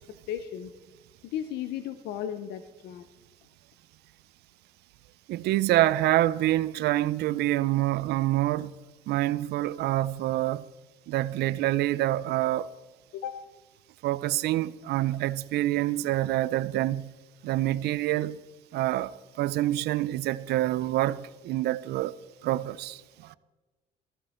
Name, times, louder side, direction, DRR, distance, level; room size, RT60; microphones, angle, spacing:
voice 1, 0.3-0.7 1.2-3.1 13.1-13.4, left 10 dB, 85° left, 0.8 m, -35 dB
voice 2, 5.3-8.7 9.1-10.6 11.1-12.7 14.0-17.1 17.4-18.4 18.7-19.1 19.4-22.1 22.4-23.0 23.3-23.4, right 15 dB, 75° right, 0.5 m, -26 dB
15.0 x 14.5 x 4.4 m
cardioid pair, 110°, 17 cm